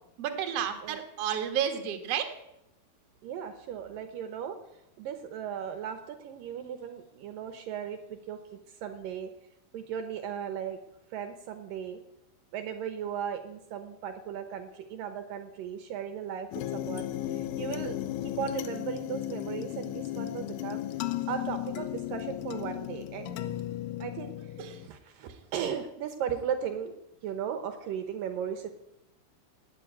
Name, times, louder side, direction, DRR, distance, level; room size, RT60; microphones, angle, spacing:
voice 1, 0.2-2.3 24.6-24.8 25.3-25.4, right 9 dB, 55° right, 5 dB, 2.1 m, -31 dB
voice 2, 3.2-9.3 9.7-10.8 11.1-12.0 12.5-23.4 24.0-24.5 24.8-26.9 27.2-28.7, right 8 dB, 70° right, 8 dB, 2.5 m, -37 dB
sound 1, 16.5-24.9, left 13 dB, 75° left, 2.2 m, -35 dB
18.0 x 7.3 x 9.1 m, 0.89 s
omnidirectional pair, 4.4 m